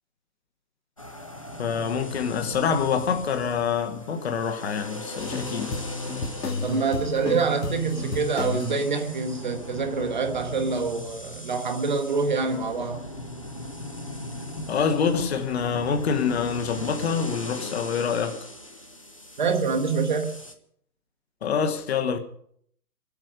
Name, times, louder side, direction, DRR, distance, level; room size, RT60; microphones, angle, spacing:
sound 1, 1.0-20.5, left 1 dB, 20° left, 0.5 m, -39 dB
voice 1, 1.6-5.7 14.6-18.5 21.4-22.2, left 6 dB, 40° left, 1.3 m, -26 dB
sound 2, 5.2-9.7, left 3 dB, 85° left, 3.0 m, -33 dB
voice 2, 6.6-13.1 19.4-20.4, right 4 dB, 30° right, 0.9 m, -26 dB
26.0 x 8.8 x 5.0 m
hypercardioid pair, 160°, 48 cm